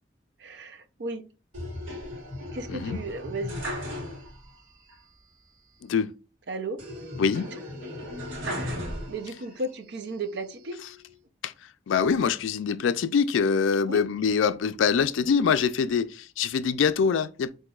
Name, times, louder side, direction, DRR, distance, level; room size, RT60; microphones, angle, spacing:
voice 1, 0.4-1.3 2.5-3.7 6.5-6.8 8.5-10.9 13.9-14.1, right 2 dB, 60° right, 0.5 m, -35 dB
sound 1, 1.5-4.6 4.9-5.0 6.8-9.5 10.1-10.9, left 1 dB, 85° right, 1.3 m, -36 dB
voice 2, 11.9-17.5, left 6 dB, 80° left, 0.3 m, -24 dB
7.6 x 2.6 x 2.3 m
head